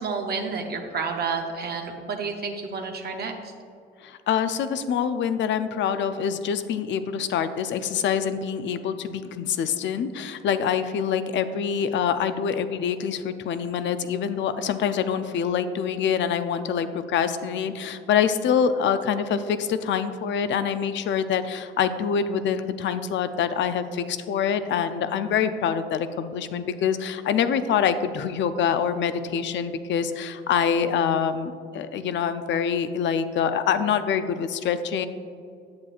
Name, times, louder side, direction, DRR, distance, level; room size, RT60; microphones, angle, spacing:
voice 1, 0.0-3.5, right 4 dB, 55° right, 3 dB, 0.7 m, -30 dB
voice 2, 4.0-35.1, left 7 dB, 65° left, 11 dB, 0.5 m, -25 dB
8.6 x 7.5 x 2.4 m, 2.5 s
cardioid pair, 90°, 20 cm